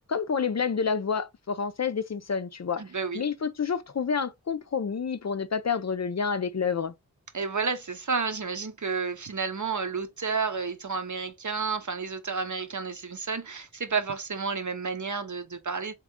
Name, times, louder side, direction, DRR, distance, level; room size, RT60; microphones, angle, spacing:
voice 1, 0.1-2.8 3.1-6.9, left 6 dB, 50° left, 0.5 m, -29 dB
voice 2, 2.8-3.2 7.3-15.9, right 5 dB, 55° right, 0.8 m, -31 dB
3.6 x 3.0 x 3.6 m
wide cardioid pair, 45°, 36 cm